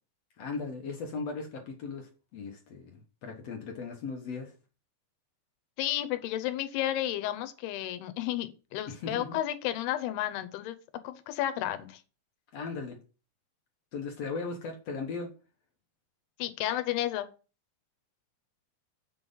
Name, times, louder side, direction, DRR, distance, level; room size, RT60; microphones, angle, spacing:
voice 1, 0.4-4.5 8.9-9.4 12.5-13.0 13.9-15.3, left 4 dB, 60° left, 1.7 m, -38 dB
voice 2, 5.8-10.8 11.0-12.0 16.4-17.3, left 13 dB, 90° left, 2.9 m, -32 dB
7.6 x 6.3 x 5.5 m
omnidirectional pair, 4.5 m